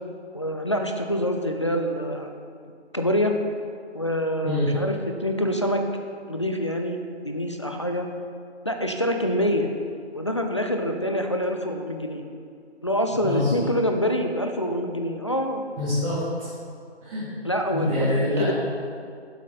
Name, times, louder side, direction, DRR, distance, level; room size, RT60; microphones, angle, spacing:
voice 1, 0.3-2.3 2.9-3.3 3.9-5.8 6.3-7.0 7.2-8.1 8.6-9.7 10.1-12.2 12.8-15.6 17.4-18.5, equal, 30° left, 4 dB, 0.4 m, -26 dB
voice 2, 13.2-13.6 15.8-16.5 17.0-17.3 17.7-18.5, left 1 dB, 30° right, -10 dB, 2.5 m, -25 dB
11.0 x 7.5 x 3.9 m, 2.3 s
figure-of-eight pair, 155°, 34 cm